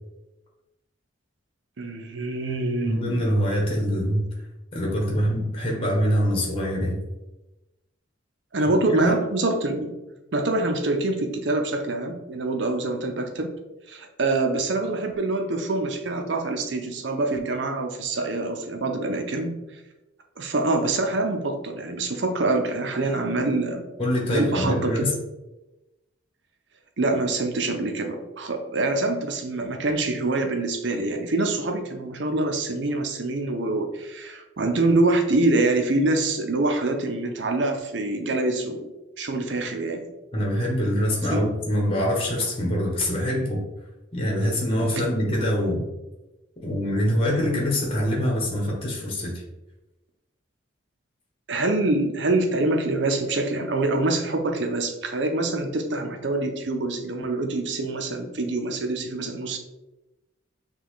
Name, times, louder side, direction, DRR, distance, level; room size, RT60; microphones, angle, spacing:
voice 1, 1.8-3.2 8.5-10.0 10.3-13.5 13.9-19.5 20.4-23.8 24.3-25.1 27.0-38.9 39.2-40.1 41.3-41.4 44.8-45.0 51.5-59.6, right 2 dB, 65° right, 5 dB, 0.7 m, -25 dB
voice 2, 2.8-4.3 4.7-7.0 8.6-8.7 9.0-9.2 24.0-25.2 40.3-43.6 44.1-45.9 46.6-49.4, equal, 30° left, -2 dB, 1.1 m, -24 dB
6.0 x 2.4 x 3.6 m, 1.0 s
head